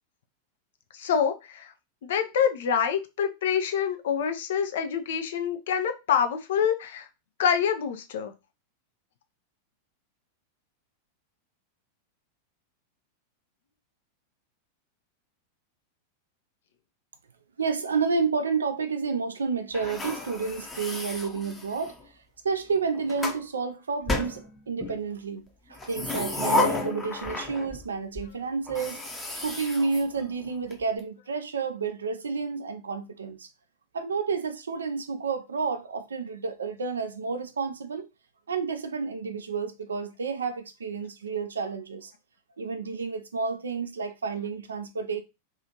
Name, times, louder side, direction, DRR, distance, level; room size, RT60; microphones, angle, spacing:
voice 1, 0.9-1.7 2.0-7.1 7.4-8.3, left 7 dB, 60° left, 0.4 m, -26 dB
voice 2, 17.6-22.0 22.4-29.0 29.4-33.5 33.9-38.1 38.5-42.1 42.6-45.2, right 5 dB, 70° right, 0.4 m, -30 dB
sound 1, 19.7-22.0 22.8-23.4 24.1-25.0 25.7-27.9 28.2-28.3 28.7-30.7, left 2 dB, 15° left, 0.7 m, -32 dB
2.7 x 2.4 x 2.8 m
figure-of-eight pair, 90°, 0 cm